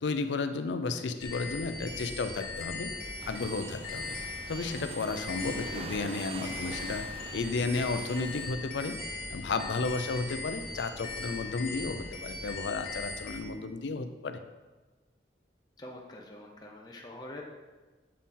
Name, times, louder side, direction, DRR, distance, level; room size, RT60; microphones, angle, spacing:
voice 1, 0.0-2.9 3.3-4.2 4.5-7.0 7.3-9.0 9.3-14.4, left 3 dB, 90° left, 9 dB, 0.5 m, -33 dB
sound 1, 1.2-13.4, left 3 dB, 55° left, 0.9 m, -39 dB
sound 2, 3.2-8.5, right 4 dB, 35° right, 0.3 m, -45 dB
voice 2, 15.8-17.4, left 1 dB, 25° left, 0 dB, 0.6 m, -45 dB
7.4 x 4.2 x 3.7 m, 1.2 s
head